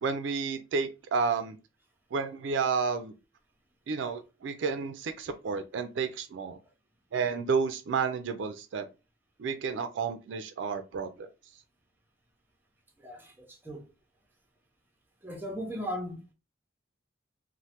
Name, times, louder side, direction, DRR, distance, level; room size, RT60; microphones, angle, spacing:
voice 1, 0.0-1.6 2.1-3.1 3.9-6.6 7.1-8.9 9.4-11.3, right 5 dB, 65° right, 0.3 m, -31 dB
voice 2, 13.0-13.9 15.2-16.2, equal, 10° right, 0.6 m, -37 dB
3.1 x 2.1 x 2.8 m
head